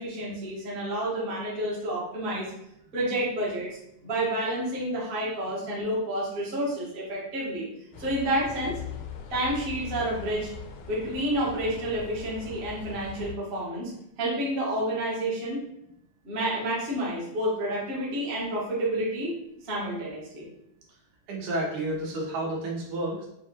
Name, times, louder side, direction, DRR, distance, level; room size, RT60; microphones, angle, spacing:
voice 1, 0.0-2.5 2.9-3.7 4.0-7.7 8.0-8.7 9.3-10.5 10.9-13.9 14.2-15.6 16.2-19.3 19.6-20.5, right 1 dB, 70° right, -6 dB, 0.5 m, -29 dB
sound 1, 7.9-13.3, left 7 dB, 80° left, 1.5 m, -41 dB
voice 2, 21.3-23.3, right 1 dB, 85° right, -2 dB, 2.5 m, -30 dB
5.8 x 2.3 x 2.9 m, 0.78 s
omnidirectional pair, 3.4 m